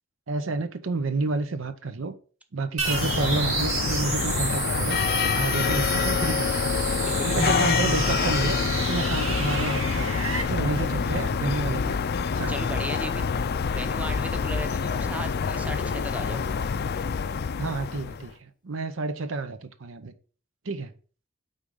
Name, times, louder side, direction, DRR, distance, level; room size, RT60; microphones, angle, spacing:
voice 1, 0.3-2.1 2.5-6.7 7.2-10.1 10.5-12.1 12.3-12.7 17.6-20.1 20.6-20.9, right 3 dB, 70° right, 0.7 m, -30 dB
sound 1, 2.8-18.3, left 6 dB, 50° left, 0.4 m, -27 dB
sound 2, 2.8-10.4, right 5 dB, 85° right, 1.7 m, -31 dB
voice 2, 7.0-7.5 12.5-13.3 13.7-16.4, right 1 dB, 5° right, 0.8 m, -36 dB
Strum, 7.3-14.2, left 1 dB, 20° left, 0.7 m, -36 dB
9.0 x 3.9 x 4.9 m
head